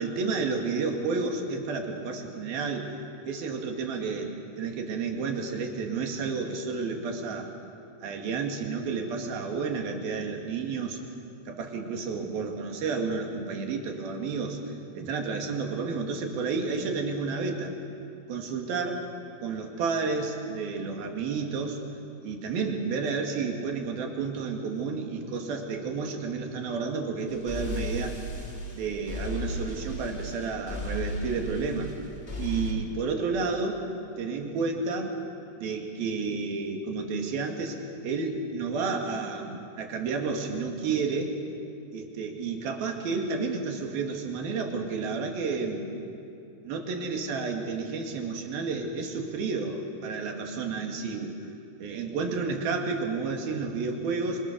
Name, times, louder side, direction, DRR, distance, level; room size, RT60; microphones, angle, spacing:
voice 1, 0.0-2.9 3.3-7.5 8.0-11.0 11.5-14.6 14.9-17.7 18.3-19.1 19.4-21.8 22.2-28.2 28.7-31.9 32.4-33.8 34.2-35.1 35.6-41.4 41.9-45.9 46.6-51.3 51.8-54.5, right 4 dB, 70° right, 2 dB, 4.1 m, -31 dB
sound 1, 27.3-32.7, left 1 dB, 15° left, 2.4 m, -35 dB
26.5 x 25.5 x 6.8 m, 2.7 s
omnidirectional pair, 4.5 m